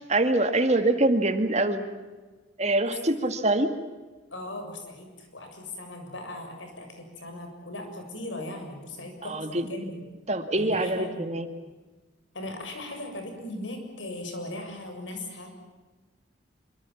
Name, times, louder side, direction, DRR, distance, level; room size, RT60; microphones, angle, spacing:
voice 1, 0.1-1.9 2.6-3.7 9.2-9.6 10.3-11.5, right 2 dB, 35° right, 7 dB, 2.2 m, -24 dB
voice 2, 2.8-3.3 4.3-10.0 10.6-11.4 12.3-15.5, left 1 dB, 85° left, 4 dB, 7.3 m, -38 dB
26.0 x 25.0 x 7.4 m, 1.3 s
head